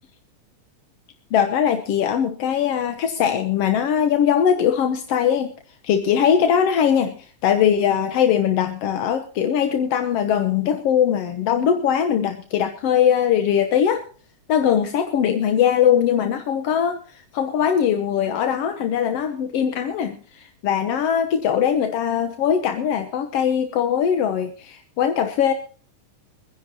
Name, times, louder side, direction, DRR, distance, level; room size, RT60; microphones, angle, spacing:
voice 1, 1.3-5.5 5.8-7.2 7.4-14.0 14.5-25.5, left 8 dB, 65° left, 7 dB, 1.7 m, -21 dB
25.0 x 10.5 x 2.8 m, 0.41 s
omnidirectional pair, 3.6 m